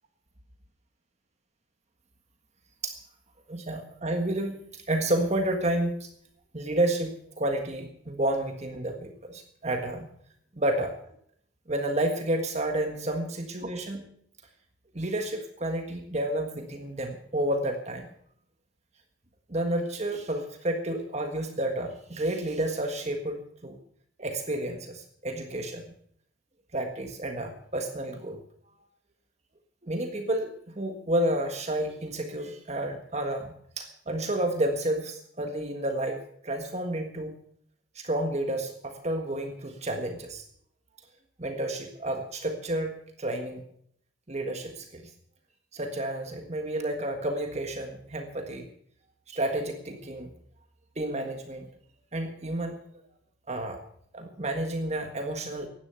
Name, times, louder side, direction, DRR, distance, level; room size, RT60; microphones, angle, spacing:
voice 1, 3.5-6.1 6.5-10.1 10.6-10.9 11.7-14.1 14.9-18.1 19.5-23.8 24.2-25.8 26.7-28.4 29.8-37.3 37.9-40.4 41.4-43.6 44.3-45.1 45.7-48.7 49.3-50.3 50.9-51.7 52.1-52.8 53.5-53.8 54.1-55.7, right 1 dB, 35° right, 5 dB, 1.6 m, -30 dB
16.5 x 11.0 x 5.7 m, 0.65 s
head